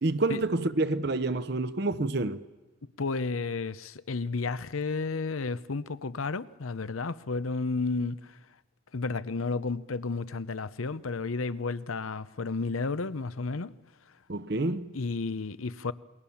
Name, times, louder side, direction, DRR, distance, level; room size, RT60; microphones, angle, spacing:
voice 1, 0.0-2.4 14.3-14.9, right 2 dB, 50° right, 0.8 m, -28 dB
voice 2, 3.0-8.4 8.9-13.7 14.9-15.9, left 3 dB, 90° left, 0.8 m, -32 dB
28.5 x 22.0 x 7.2 m
head